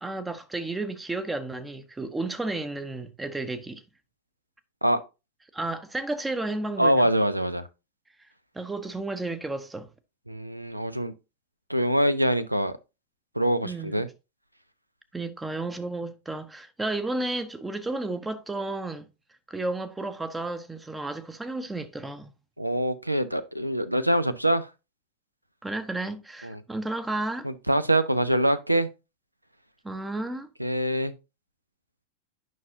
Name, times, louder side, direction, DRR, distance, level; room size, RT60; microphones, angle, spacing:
voice 1, 0.0-3.8 5.5-7.1 8.5-9.9 13.6-14.0 15.1-19.1 19.5-22.3 25.6-27.5 29.8-30.5, right 2 dB, 10° right, 0.7 m, -32 dB
voice 2, 6.8-7.7 10.3-11.1 11.7-12.8 13.4-14.1 22.6-24.7 26.4-26.6 27.4-28.9 30.6-31.1, equal, 85° right, 0.5 m, -24 dB
9.3 x 5.6 x 2.7 m
figure-of-eight pair, 90°, 0 cm